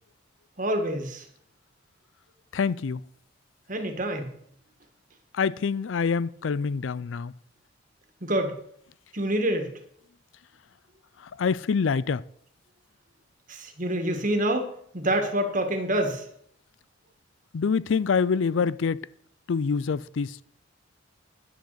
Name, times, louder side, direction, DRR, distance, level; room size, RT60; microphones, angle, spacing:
voice 1, 0.6-1.2 3.7-4.3 8.2-8.6 9.1-9.7 13.5-16.2, right 1 dB, 40° right, 1.9 m, -27 dB
voice 2, 2.5-3.0 5.3-7.3 11.4-12.2 17.5-19.1 19.5-20.4, left 5 dB, 75° left, 0.4 m, -26 dB
10.5 x 6.6 x 7.9 m
head